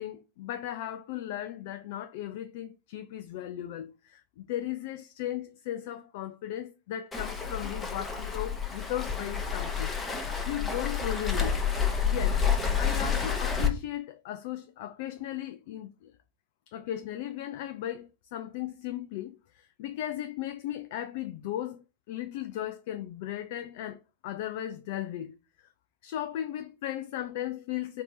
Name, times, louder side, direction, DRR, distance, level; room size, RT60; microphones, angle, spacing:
voice 1, 0.0-11.5 12.0-12.4 12.8-16.1 16.7-25.7 26.0-28.0, left 12 dB, 50° left, 0.3 m, -36 dB
Waves surf, 7.1-13.7, left 6 dB, 15° left, 1.0 m, -29 dB
4.4 x 2.8 x 3.8 m
figure-of-eight pair, 90°, 0 cm